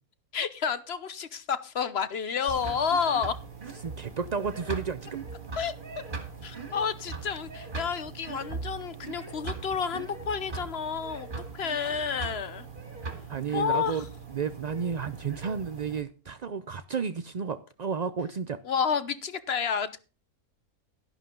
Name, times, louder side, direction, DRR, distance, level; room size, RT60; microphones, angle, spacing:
voice 1, 0.3-3.4 5.6-5.7 6.4-11.3 11.5-12.7 13.5-14.0 18.6-20.0, left 6 dB, 50° left, 1.1 m, -30 dB
sound 1, 2.5-16.0, right 4 dB, 35° right, 2.1 m, -40 dB
voice 2, 3.8-5.2 13.3-14.1 14.3-18.6, right 6 dB, 70° right, 0.3 m, -32 dB
12.0 x 11.0 x 3.8 m
omnidirectional pair, 1.6 m